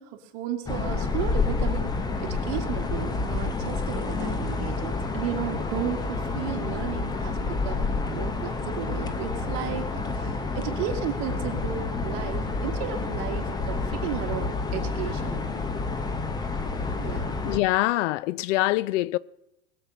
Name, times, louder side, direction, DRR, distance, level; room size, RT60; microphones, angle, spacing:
voice 1, 0.0-1.9 2.2-15.5 17.0-17.4, right 10 dB, 55° right, 2.2 m, -34 dB
sound 1, 0.7-17.6, left 3 dB, 10° left, 0.7 m, -29 dB
voice 2, 17.4-19.2, left 17 dB, 80° left, 0.6 m, -24 dB
21.0 x 7.7 x 5.5 m
supercardioid pair, 155°, 36 cm